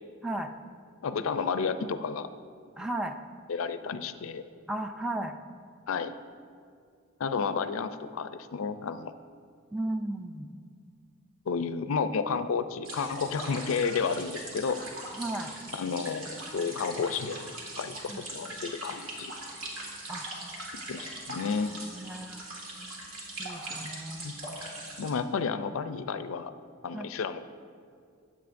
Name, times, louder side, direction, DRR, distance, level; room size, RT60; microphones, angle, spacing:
voice 1, 1.0-2.3 3.5-4.5 5.9-6.1 7.2-9.1 11.5-14.8 15.7-19.3 20.9-21.7 24.2-24.3 25.0-26.5 26.8-27.4, left 5 dB, 80° left, 11 dB, 0.4 m, -31 dB
voice 2, 2.8-3.2 4.7-5.4 9.7-10.5 15.1-15.6 18.1-18.2 20.1-20.3 21.3-21.5 21.9-22.5 23.4-24.4 26.9-27.1, right 1 dB, 5° right, 6 dB, 0.4 m, -35 dB
sound 1, 12.8-25.1, right 1 dB, 70° right, 1.9 m, -41 dB
15.0 x 8.4 x 2.6 m, 2.2 s
head